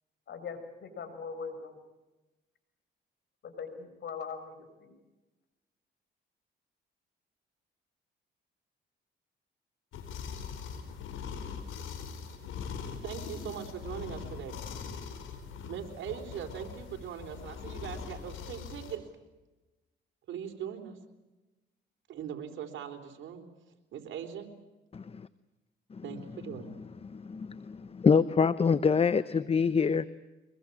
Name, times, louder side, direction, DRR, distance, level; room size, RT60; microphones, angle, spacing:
voice 1, 0.3-1.8 3.4-4.9, left 5 dB, 60° left, 8 dB, 6.0 m, -41 dB
sound 1, 9.9-19.0, left 6 dB, 85° left, 4.8 m, -41 dB
voice 2, 13.0-14.6 15.6-19.0 20.3-21.0 22.1-23.5 23.9-24.5 26.0-26.8, right 9 dB, 75° right, 5 dB, 4.0 m, -40 dB
voice 3, 24.9-25.3 25.9-26.0 27.0-30.1, left 5 dB, 30° left, 15 dB, 0.8 m, -26 dB
24.0 x 22.0 x 8.6 m, 1.1 s
cardioid pair, 90°, 20 cm